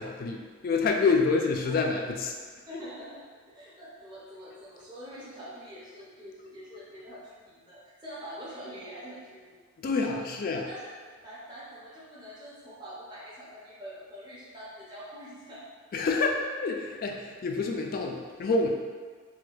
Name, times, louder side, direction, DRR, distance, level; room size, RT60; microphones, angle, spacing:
voice 1, 0.0-2.3 9.8-10.7 15.9-18.7, left 4 dB, 45° left, 3 dB, 0.3 m, -27 dB
voice 2, 2.7-3.2 3.5-9.6 10.2-10.3 10.6-10.9 11.2-15.6, equal, 20° right, -9 dB, 0.6 m, -45 dB
4.2 x 2.3 x 2.3 m, 1.5 s
head